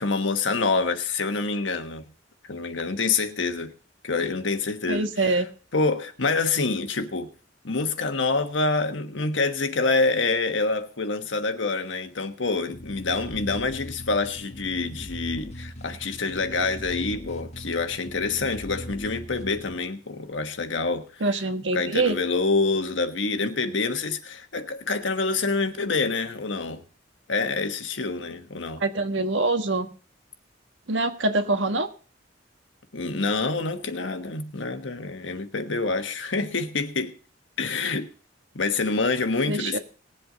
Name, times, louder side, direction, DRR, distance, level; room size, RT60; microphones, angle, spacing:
voice 1, 0.0-2.0 2.5-3.7 4.0-5.4 5.7-7.3 7.6-21.2 21.7-26.8 27.3-28.8 32.9-37.1 37.6-38.1 38.5-39.8, left 3 dB, 85° left, 1.3 m, -26 dB
voice 2, 4.9-5.5 21.2-22.2 28.8-29.9 30.9-31.9 39.5-39.8, right 2 dB, 80° right, 1.4 m, -24 dB
sound 1, 12.7-19.8, equal, 35° left, 1.5 m, -39 dB
19.5 x 7.8 x 3.9 m
head